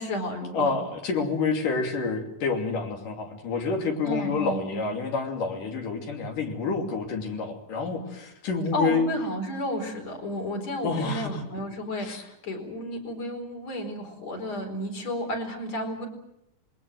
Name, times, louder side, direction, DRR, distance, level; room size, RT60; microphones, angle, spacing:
voice 1, 0.0-0.8 4.0-4.9 8.7-16.1, equal, 50° left, 2 dB, 5.7 m, -32 dB
voice 2, 0.5-9.0 10.8-11.7 12.0-12.2, left 4 dB, 75° left, 3 dB, 4.5 m, -28 dB
26.5 x 22.0 x 7.7 m, 0.82 s
omnidirectional pair, 3.8 m